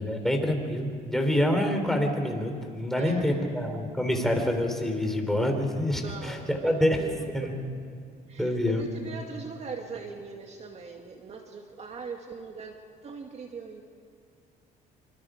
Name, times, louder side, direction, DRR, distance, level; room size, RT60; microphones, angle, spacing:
voice 1, 0.0-7.0 7.3-7.5 8.4-8.9, left 1 dB, ahead, 3 dB, 3.7 m, -26 dB
voice 2, 2.9-3.5 5.9-7.6 8.3-13.8, right 5 dB, 40° right, 3 dB, 2.2 m, -41 dB
27.0 x 25.5 x 5.2 m, 2.2 s
cardioid pair, 110°, 17 cm